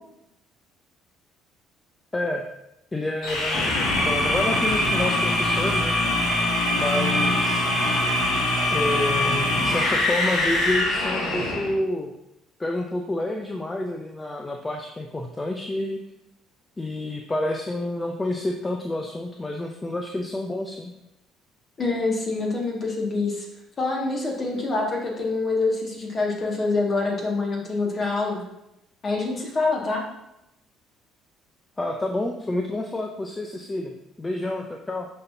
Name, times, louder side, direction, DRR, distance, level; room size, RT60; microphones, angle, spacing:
voice 1, 2.1-2.5 2.9-5.9 6.8-7.7 8.7-12.1 12.6-16.0 16.8-20.9 31.8-35.1, left 1 dB, 20° left, 3 dB, 0.7 m, -29 dB
sound 1, 3.2-11.7, left 1 dB, 60° left, 1.7 m, -23 dB
voice 2, 21.8-23.5 23.8-28.4 29.0-30.0, left 3 dB, 40° left, -1 dB, 2.1 m, -25 dB
11.5 x 4.2 x 2.8 m, 0.87 s
figure-of-eight pair, 55°, 0 cm